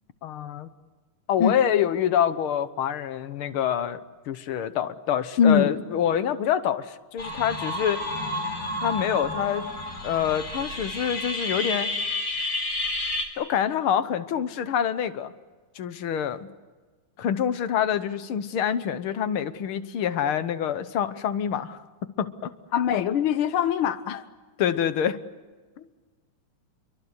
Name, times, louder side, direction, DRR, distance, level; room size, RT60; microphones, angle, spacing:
voice 1, 0.2-0.7 1.3-4.0 4.3-8.0 8.8-9.6 10.0-11.9 13.4-15.3 15.7-16.4 17.2-21.8 22.2-22.5 24.6-25.2 25.8-25.9, left 9 dB, 65° left, 12 dB, 1.3 m, -26 dB
voice 2, 5.4-5.7 22.7-24.2, left 7 dB, 85° left, 12 dB, 1.1 m, -22 dB
sound 1, 7.2-13.3, left 1 dB, 25° left, 4.0 m, -30 dB
29.0 x 23.5 x 8.2 m, 1.4 s
omnidirectional pair, 3.8 m